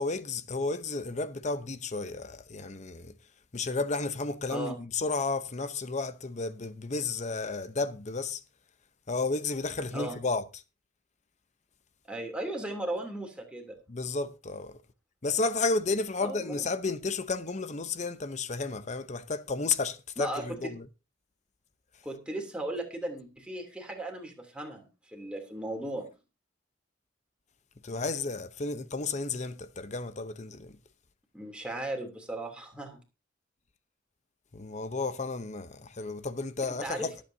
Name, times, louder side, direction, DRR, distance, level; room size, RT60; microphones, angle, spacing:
voice 1, 0.0-3.1 3.5-8.4 9.1-10.4 13.9-14.8 15.2-20.9 27.8-30.8 34.5-37.1, left 3 dB, 40° left, 0.8 m, -32 dB
voice 2, 12.1-13.8 16.2-16.7 20.2-20.7 22.0-26.1 31.3-33.0 36.8-37.1, right 1 dB, 5° right, 2.9 m, -36 dB
23.5 x 8.5 x 2.7 m
head